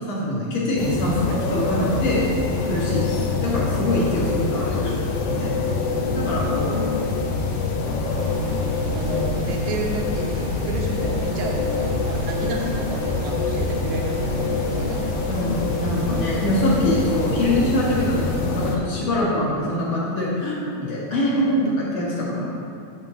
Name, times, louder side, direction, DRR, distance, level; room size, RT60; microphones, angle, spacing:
voice 1, 0.1-2.2 2.6-3.1 3.4-4.9 5.3-5.6 6.1-6.7 15.3-22.5, left 1 dB, 50° left, -6 dB, 2.3 m, -24 dB
sound 1, 0.8-18.8, left 4 dB, 65° left, 1.7 m, -25 dB
voice 2, 6.3-6.9 8.1-15.0, right 2 dB, 65° right, 0 dB, 1.8 m, -32 dB
sound 2, 8.1-18.1, right 3 dB, 85° right, 2.0 m, -35 dB
9.5 x 3.6 x 6.7 m, 2.5 s
omnidirectional pair, 3.4 m